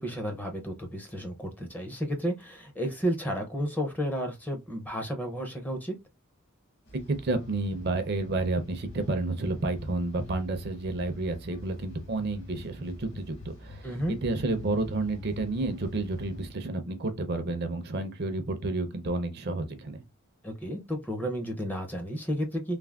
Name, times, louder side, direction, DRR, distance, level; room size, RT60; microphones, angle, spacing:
voice 1, 0.0-6.0 13.8-14.2 20.4-22.8, equal, 10° left, 0.4 m, -32 dB
sound 1, 6.9-16.5, left 1 dB, 55° left, 1.1 m, -46 dB
voice 2, 7.2-20.0, right 2 dB, 45° right, 0.5 m, -30 dB
3.3 x 2.0 x 2.3 m
head